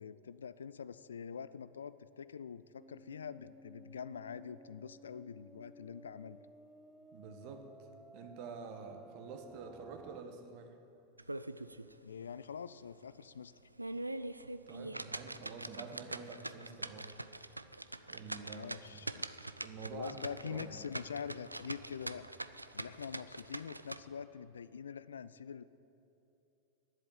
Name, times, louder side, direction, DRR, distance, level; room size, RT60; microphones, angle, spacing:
voice 1, 0.0-6.4 12.0-13.5 18.4-19.4 19.9-22.3 22.7-25.6, left 7 dB, 70° left, 17 dB, 0.3 m, -45 dB
sound 1, 2.8-10.2, right 1 dB, 5° right, 0.4 m, -57 dB
voice 2, 7.1-7.9 8.1-10.7 14.7-17.1 18.1-18.7 19.6-20.9, right 5 dB, 45° right, 5 dB, 1.3 m, -48 dB
sound 2, 11.2-11.9 12.3-12.4 12.9-13.0 13.6-24.0, right 2 dB, 85° right, 0.3 m, -43 dB
10.5 x 7.7 x 8.7 m, 2.8 s
figure-of-eight pair, 90°, 0 cm